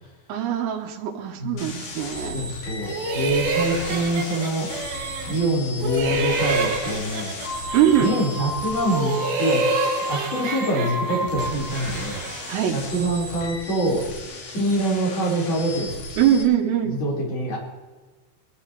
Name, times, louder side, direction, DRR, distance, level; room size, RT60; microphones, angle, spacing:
voice 1, 0.3-2.4 7.7-8.1 12.5-12.8 16.2-16.9, right 10 dB, 90° right, 0 dB, 4.0 m, -22 dB
sound 1, 1.6-16.4, left 2 dB, 65° left, 4.8 m, -36 dB
voice 2, 2.3-4.7 5.3-7.3 8.0-12.2 12.7-14.1 14.5-16.0 16.8-17.6, right 1 dB, 25° left, -6 dB, 5.2 m, -25 dB
sound 2, 2.8-5.5 5.8-8.4 8.8-12.6, right 3 dB, 60° right, 3.3 m, -28 dB
sound 3, 7.4-11.8, equal, 25° right, 2.1 m, -32 dB
23.0 x 13.5 x 3.3 m, 1.3 s
omnidirectional pair, 5.8 m